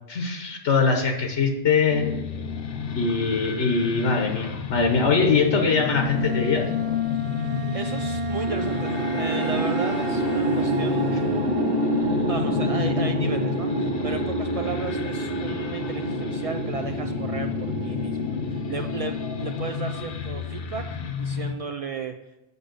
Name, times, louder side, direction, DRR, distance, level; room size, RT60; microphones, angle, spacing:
voice 1, 0.1-2.1 2.9-6.7, left 4 dB, 80° left, 3 dB, 1.3 m, -22 dB
sound 1, 1.9-21.5, left 7 dB, 60° left, 0.8 m, -31 dB
Bowed string instrument, 5.8-11.9, right 1 dB, 35° right, 0.8 m, -33 dB
voice 2, 7.4-11.2 12.3-20.8 21.2-22.1, right 5 dB, 70° right, 5 dB, 0.3 m, -34 dB
sound 2, 8.5-20.8, right 2 dB, 55° right, 1.2 m, -28 dB
7.0 x 6.8 x 5.2 m, 0.97 s
omnidirectional pair, 1.2 m